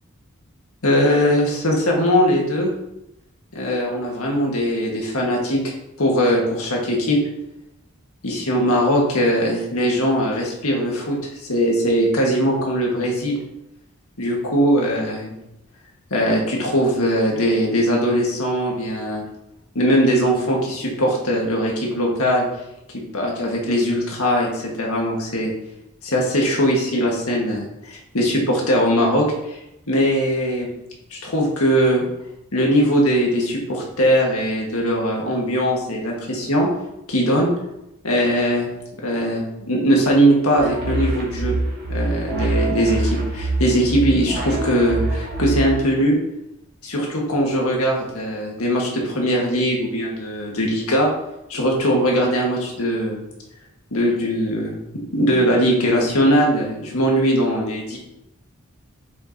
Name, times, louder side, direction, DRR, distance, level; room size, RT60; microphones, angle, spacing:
voice 1, 0.8-2.7 3.5-7.2 8.2-11.2 11.5-13.4 14.2-15.3 16.1-19.2 19.7-22.4 22.9-25.5 26.0-29.6 29.9-30.7 31.1-32.0 32.5-36.7 37.1-37.5 38.0-38.7 39.0-41.5 41.9-46.2 46.8-51.1 51.5-53.2 53.9-54.7 55.1-58.0, equal, 85° left, -1 dB, 1.7 m, -20 dB
sound 1, 40.6-45.8, right 2 dB, 50° right, 1.7 m, -25 dB
6.9 x 5.4 x 2.9 m, 0.85 s
head